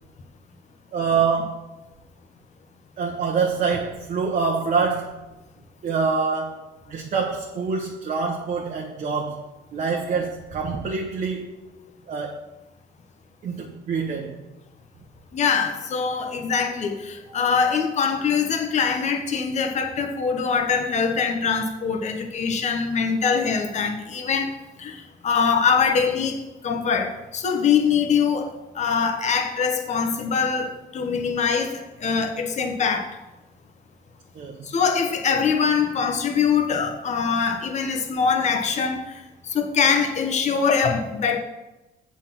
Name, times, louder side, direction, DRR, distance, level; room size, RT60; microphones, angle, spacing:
voice 1, 0.9-1.6 3.0-5.2 5.8-6.6 6.9-9.4 9.7-11.5 12.1-12.4 13.4-14.4 34.3-34.7, right 5 dB, 45° right, 1 dB, 1.0 m, -25 dB
voice 2, 15.3-24.5 24.8-33.1 34.6-41.4, left 6 dB, 45° left, 4 dB, 1.1 m, -23 dB
7.6 x 4.2 x 5.9 m, 1.0 s
cardioid pair, 110°, 17 cm